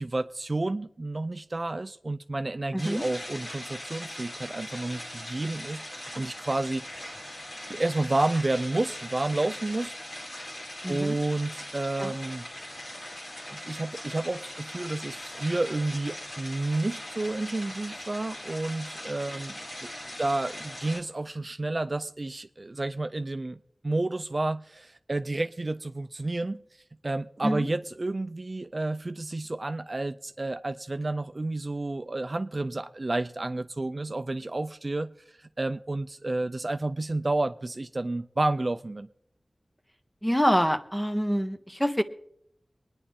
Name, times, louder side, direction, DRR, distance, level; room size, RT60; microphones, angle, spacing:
voice 1, 0.0-7.1 7.7-9.9 10.9-12.5 12.8-13.0 13.5-19.9 20.2-23.6 23.8-26.6 27.0-39.1, right 2 dB, 45° right, 10 dB, 0.4 m, -30 dB
voice 2, 2.7-3.0 10.8-11.2 12.0-12.1 27.4-27.7 40.2-42.0, equal, 10° left, 8 dB, 1.0 m, -26 dB
sound 1, 2.8-21.0, left 1 dB, 55° left, 2.9 m, -40 dB
23.5 x 9.9 x 3.6 m, 0.69 s
wide cardioid pair, 65°, 0 cm